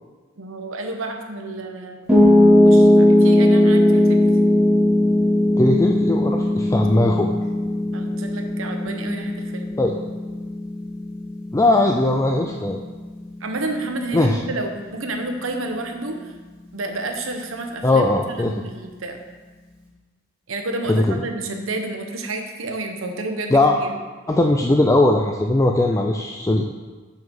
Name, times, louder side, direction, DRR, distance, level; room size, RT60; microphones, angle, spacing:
voice 1, 0.4-2.1 2.5-4.3 7.9-9.7 13.4-16.2 16.7-19.2 20.5-23.9, right 2 dB, 85° right, 4 dB, 1.0 m, -30 dB
Piano, 2.1-14.3, left 1 dB, 5° right, 2.6 m, -18 dB
voice 2, 5.6-7.3 9.8-9.9 11.5-12.8 14.1-14.4 17.8-18.5 20.9-21.2 23.5-23.8 24.3-26.6, left 2 dB, 15° left, 2 dB, 0.4 m, -19 dB
7.0 x 6.4 x 5.3 m, 1.3 s
head